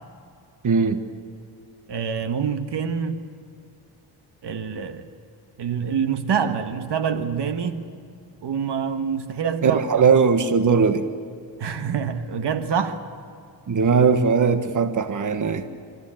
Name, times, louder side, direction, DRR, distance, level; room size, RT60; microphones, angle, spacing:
voice 1, 0.6-1.0 9.6-11.0 13.7-15.7, right 5 dB, 45° right, 1.4 m, -19 dB
voice 2, 1.9-3.2 4.4-5.1 5.6-7.8 8.4-9.8 11.6-13.0, right 7 dB, 65° right, 1.6 m, -26 dB
29.5 x 14.5 x 8.9 m
cardioid pair, 85°, 44 cm